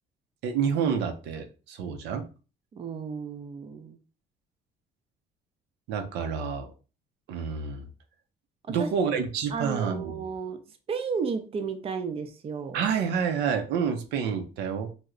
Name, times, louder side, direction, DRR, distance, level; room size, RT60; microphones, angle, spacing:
voice 1, 0.4-2.3 5.9-6.7 7.3-7.9 8.7-10.2 12.7-14.9, right 6 dB, 85° right, 0.6 m, -28 dB
voice 2, 2.7-4.0 8.7-9.1 9.5-10.6 10.9-12.8, right 5 dB, 35° right, 0.5 m, -33 dB
3.1 x 2.1 x 3.6 m
cardioid pair, 110°, 17 cm